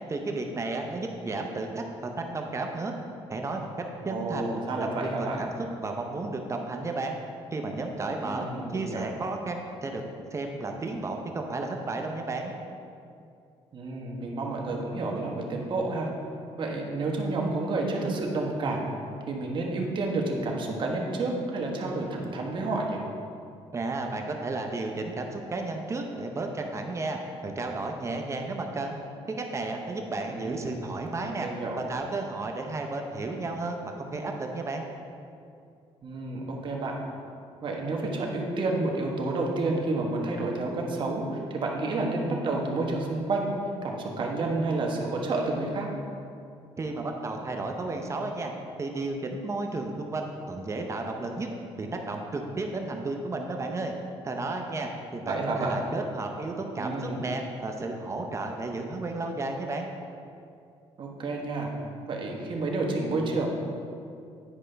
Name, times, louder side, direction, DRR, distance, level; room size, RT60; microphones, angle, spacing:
voice 1, 0.1-2.9 3.3-3.7 4.0-4.5 5.0-5.5 5.8-7.2 7.5-10.0 10.3-12.5 23.7-27.2 27.4-29.0 29.3-31.5 31.8-34.9 46.8-48.5 48.8-51.5 51.8-53.9 54.2-59.9, right 2 dB, 25° right, 3 dB, 0.6 m, -33 dB
voice 2, 4.0-5.4 8.2-9.1 13.7-16.1 16.6-18.9 19.3-23.0 30.3-30.8 31.4-31.8 36.0-36.9 37.6-43.5 43.8-45.9 55.3-55.8 56.8-57.2 61.0-61.7 62.0-63.5, right 2 dB, 50° right, 0 dB, 1.2 m, -30 dB
9.9 x 5.2 x 3.3 m, 2.5 s
cardioid pair, 115°, 11 cm